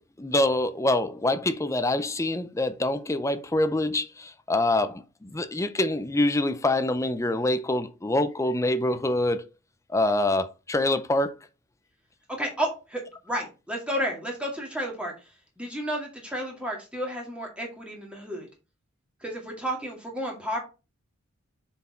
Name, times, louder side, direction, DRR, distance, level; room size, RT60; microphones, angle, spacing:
voice 1, 0.2-9.4 9.9-11.3, left 1 dB, 15° left, 0.5 m, -25 dB
voice 2, 12.3-15.1 15.6-18.5 19.2-20.6, equal, 5° right, 2.0 m, -32 dB
6.8 x 4.5 x 4.3 m
head